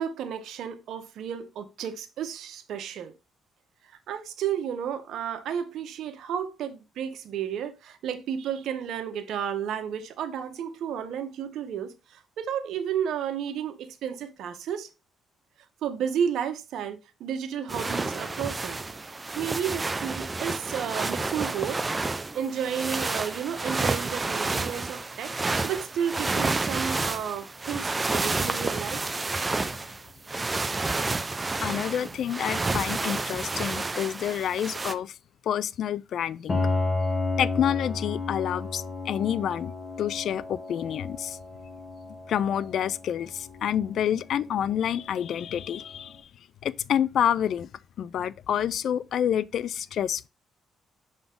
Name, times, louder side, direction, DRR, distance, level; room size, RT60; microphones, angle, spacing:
voice 1, 0.0-3.1 3.9-14.9 15.8-18.8 19.4-21.8 22.3-25.3 25.6-29.0, right 8 dB, 75° right, 1.1 m, -32 dB
sound 1, 17.7-34.9, right 3 dB, 20° right, 0.6 m, -30 dB
voice 2, 31.6-35.2 35.4-36.7 37.4-39.7 40.0-41.4 42.3-46.2 46.6-47.7 48.0-50.3, left 9 dB, 70° left, 0.3 m, -28 dB
Piano, 36.5-46.1, left 3 dB, 35° left, 1.2 m, -33 dB
6.9 x 4.0 x 3.6 m
cardioid pair, 90°, 0 cm